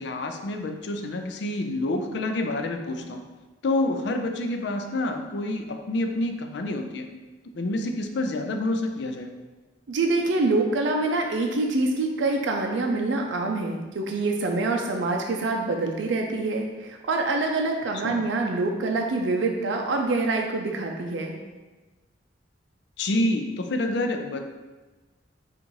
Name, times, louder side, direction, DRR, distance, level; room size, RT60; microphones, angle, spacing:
voice 1, 0.0-3.2 3.6-7.1 7.5-9.3 18.0-18.2 23.0-24.5, left 2 dB, 65° left, 5 dB, 0.4 m, -28 dB
voice 2, 9.9-21.4, right 3 dB, 80° right, 2 dB, 0.4 m, -25 dB
3.9 x 2.5 x 4.5 m, 1.2 s
head